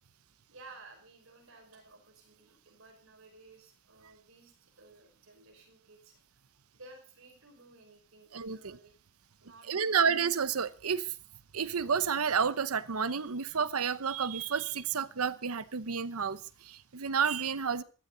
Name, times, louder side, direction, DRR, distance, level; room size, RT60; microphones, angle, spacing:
voice 1, 0.5-6.2 6.7-8.9 9.4-10.2, right 3 dB, 65° right, 2 dB, 5.4 m, -55 dB
voice 2, 8.3-8.8 9.7-11.1 11.5-17.8, right 6 dB, 85° right, 15 dB, 0.9 m, -30 dB
16.0 x 13.0 x 4.0 m, 0.36 s
head